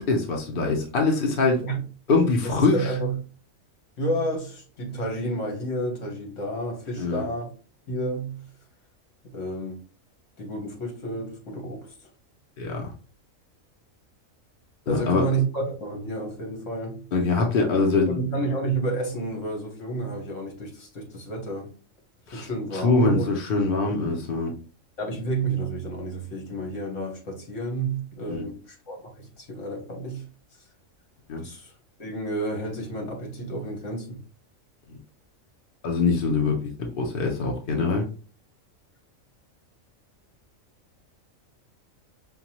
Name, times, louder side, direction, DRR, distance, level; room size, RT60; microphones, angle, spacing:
voice 1, 0.0-1.6 2.1-2.9 7.0-7.2 12.6-12.9 14.9-15.2 17.1-18.2 22.3-22.5 22.7-24.5 28.3-28.5 31.3-31.4 34.9-35.0 35.8-38.1, left 3 dB, 45° left, 0.9 m, -23 dB
voice 2, 2.4-3.2 4.0-7.5 7.9-8.4 9.2-9.8 10.4-12.1 14.9-17.1 18.1-21.8 22.3-23.3 23.8-24.1 25.0-30.3 31.4-34.2, right 2 dB, 65° left, 1.5 m, -30 dB
5.5 x 2.2 x 2.9 m
omnidirectional pair, 1.4 m